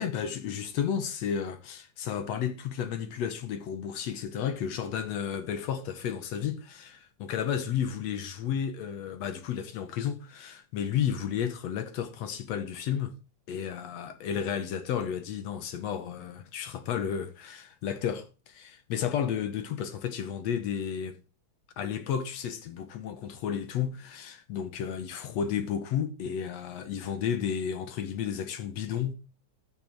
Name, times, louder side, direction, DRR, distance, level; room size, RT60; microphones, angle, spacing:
voice 1, 0.0-13.1 13.5-21.2 21.8-29.1, left 8 dB, 70° left, 2.1 m, -32 dB
13.0 x 7.1 x 4.5 m
omnidirectional pair, 3.4 m